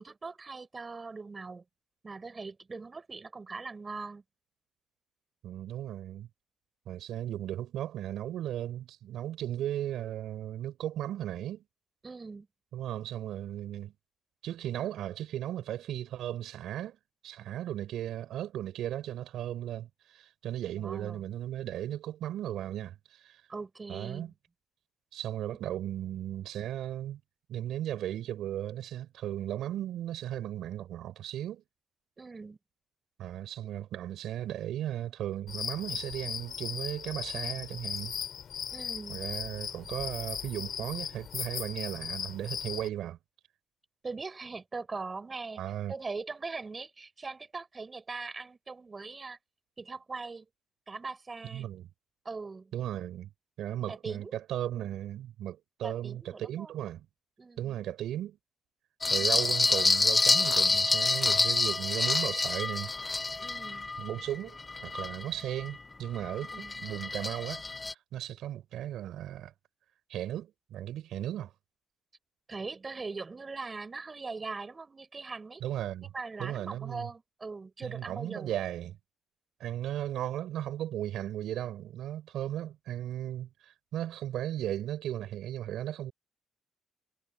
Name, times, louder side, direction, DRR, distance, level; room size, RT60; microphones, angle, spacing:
voice 1, 0.0-1.6 2.0-4.2 12.0-12.5 20.7-21.2 23.5-24.3 32.2-32.6 38.7-39.2 44.0-45.6 45.9-49.4 49.8-50.5 50.9-51.7 52.3-52.7 53.9-54.3 55.8-56.8 57.4-57.8 59.0-59.4 63.4-63.9 66.5-66.8 72.5-75.6 76.1-78.5, right 4 dB, 30° right, 6.8 m, -41 dB
voice 2, 5.4-6.3 6.9-11.6 12.7-13.9 14.4-17.0 17.2-23.4 23.9-24.3 25.1-27.2 27.5-31.6 33.2-38.1 39.1-43.2 45.6-45.9 51.5-51.9 52.7-53.3 53.6-57.1 57.6-58.4 59.1-62.9 64.0-64.6 64.8-69.5 70.1-71.5 75.6-76.1 76.4-77.1 77.8-79.0 79.6-86.1, right 12 dB, 80° right, 5.7 m, -36 dB
sound 1, 35.5-42.9, left 8 dB, 60° left, 6.3 m, -38 dB
sound 2, 59.0-65.7 66.1-67.9, left 3 dB, 25° left, 0.6 m, -28 dB
cardioid pair, 90°, 0 cm